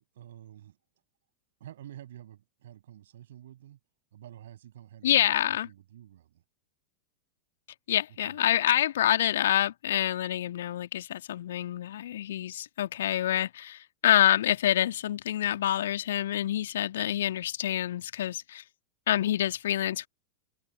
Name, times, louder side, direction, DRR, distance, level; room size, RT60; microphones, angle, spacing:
voice 1, 0.1-0.8 1.6-3.8 4.1-6.4 8.2-8.4, right 12 dB, 60° right, 7.7 m, -49 dB
voice 2, 5.0-5.7 7.9-18.6 19.1-20.1, left 12 dB, 60° left, 2.2 m, -27 dB
figure-of-eight pair, 90°, 0 cm